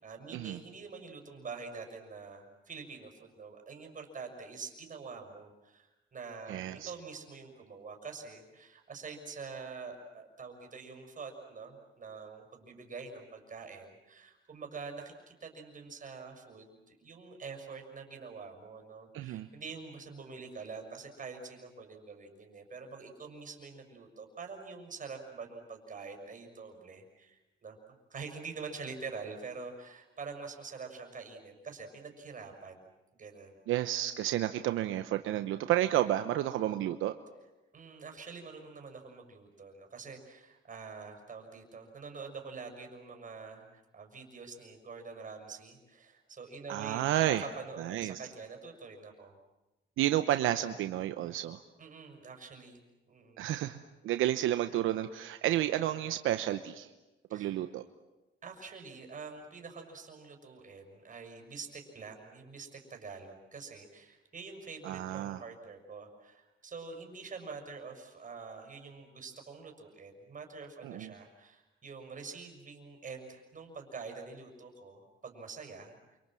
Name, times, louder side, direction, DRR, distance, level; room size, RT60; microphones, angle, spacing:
voice 1, 0.0-27.8 28.1-32.9 33.2-33.6 37.7-47.0 47.3-49.4 51.8-53.4 57.3-57.5 58.4-76.2, right 4 dB, 40° right, 3 dB, 6.2 m, -46 dB
voice 2, 6.5-6.9 19.1-19.5 33.7-37.1 46.7-47.4 47.8-48.2 50.0-51.6 53.4-53.8 54.0-56.9 57.3-57.8 64.8-65.4 70.8-71.1, right 13 dB, 85° right, 9 dB, 1.0 m, -31 dB
28.5 x 26.0 x 7.7 m, 1.0 s
cardioid pair, 90°, 20 cm